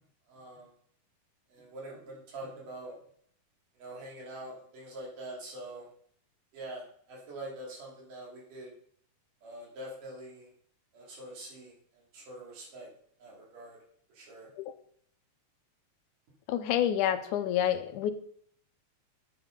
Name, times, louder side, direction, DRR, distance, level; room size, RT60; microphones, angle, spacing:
voice 1, 0.3-0.7 1.5-2.9 3.7-5.9 6.5-8.7 9.4-10.5 10.9-12.9 13.2-13.8 14.1-14.5, right 1 dB, 75° right, -3 dB, 4.7 m, -44 dB
voice 2, 16.5-18.1, left 10 dB, 80° left, 10 dB, 2.1 m, -28 dB
9.6 x 7.9 x 5.4 m, 0.63 s
omnidirectional pair, 3.7 m